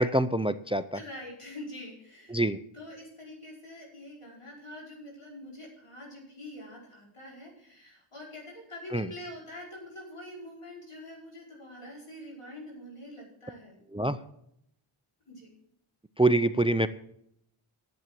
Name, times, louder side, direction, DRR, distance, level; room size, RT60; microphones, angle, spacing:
voice 1, 0.0-1.0 2.3-2.6 8.9-9.1 13.9-14.2 16.2-16.9, right 2 dB, 10° right, 13 dB, 0.5 m, -25 dB
voice 2, 0.9-2.4 2.7-13.8 15.3-15.5, left 1 dB, 80° left, -4 dB, 5.3 m, -45 dB
10.5 x 8.3 x 7.6 m, 0.73 s
wide cardioid pair, 55°, 50 cm